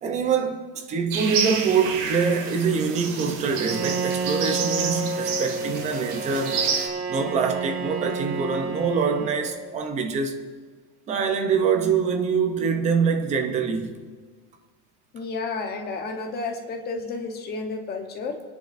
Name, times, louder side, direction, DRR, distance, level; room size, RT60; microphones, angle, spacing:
voice 1, 0.0-6.7 7.1-10.4 11.1-13.9, right 5 dB, 15° right, 0.5 m, -24 dB
sound 1, 1.1-6.9, right 6 dB, 75° right, 2.3 m, -30 dB
Bowed string instrument, 3.5-9.8, right 3 dB, 50° right, 2.7 m, -30 dB
voice 2, 15.1-18.4, left 3 dB, 20° left, 0.9 m, -31 dB
28.0 x 10.5 x 2.5 m
cardioid pair, 180°, 45 cm